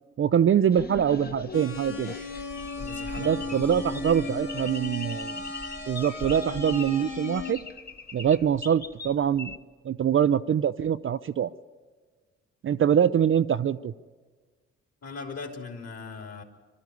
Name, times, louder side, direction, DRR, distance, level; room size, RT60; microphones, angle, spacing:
voice 1, 0.2-2.1 3.2-5.4 5.9-7.6 8.1-9.6 9.8-11.5 12.6-13.9, right 8 dB, 40° right, 12 dB, 0.5 m, -24 dB
sound 1, 0.7-9.6, left 3 dB, 30° left, 1.3 m, -41 dB
sound 2, 1.5-7.5, left 3 dB, 85° left, 1.8 m, -36 dB
voice 2, 2.8-3.9 4.2-4.3 15.0-16.4, left 4 dB, 45° left, 4 dB, 3.3 m, -40 dB
24.0 x 12.5 x 9.5 m, 1.4 s
hypercardioid pair, 45°, 34 cm